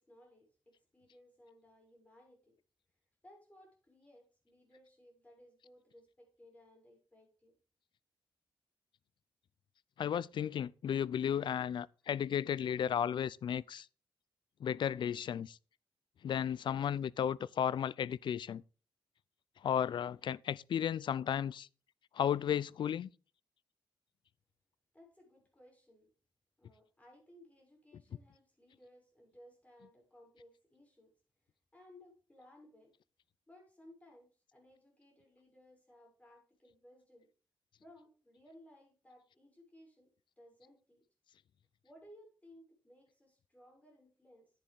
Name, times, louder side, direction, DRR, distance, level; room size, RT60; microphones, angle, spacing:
voice 1, 0.0-2.5 3.2-7.5 10.3-10.4 24.9-26.1 26.6-31.1 31.4-32.9 33.5-37.3 37.8-40.1 40.4-41.0 41.8-44.5, left 1 dB, 15° left, 6.6 m, -61 dB
voice 2, 10.0-13.9 14.6-15.6 16.2-18.6 19.6-21.7 22.1-23.1 27.9-28.0, left 9 dB, 65° left, 0.4 m, -34 dB
10.5 x 10.0 x 3.6 m
cardioid pair, 100°, 9 cm